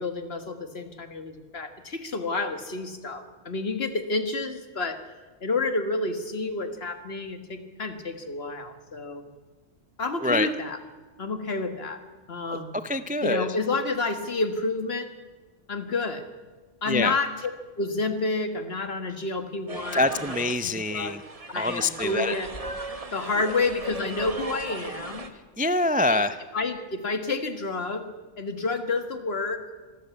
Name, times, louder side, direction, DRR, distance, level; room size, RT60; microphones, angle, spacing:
voice 1, 0.0-5.0 5.4-9.2 10.0-10.8 11.2-12.0 12.3-12.8 13.2-15.1 15.7-16.2 16.8-17.5 17.8-20.2 20.6-21.2 21.5-22.5 23.1-25.3 26.1-26.2 26.5-29.6, left 3 dB, 60° left, 8 dB, 1.9 m, -29 dB
voice 2, 12.8-13.5 16.9-17.1 19.9-21.2 21.6-22.3 25.6-26.4, left 2 dB, 10° right, 12 dB, 0.4 m, -25 dB
sound 1, 19.7-25.3, right 3 dB, 30° right, 1.4 m, -38 dB
25.5 x 14.0 x 8.3 m, 1.3 s
omnidirectional pair, 1.2 m